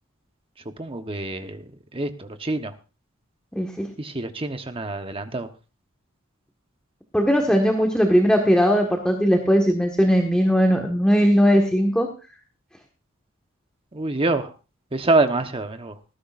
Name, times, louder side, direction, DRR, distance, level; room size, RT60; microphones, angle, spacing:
voice 1, 0.8-1.6 1.9-2.7 4.0-5.5 13.9-14.5 14.9-15.9, right 2 dB, 25° right, 7 dB, 1.1 m, -25 dB
voice 2, 3.5-3.9 7.1-12.1, equal, 5° left, 2 dB, 1.6 m, -19 dB
19.0 x 15.0 x 2.6 m, 0.32 s
head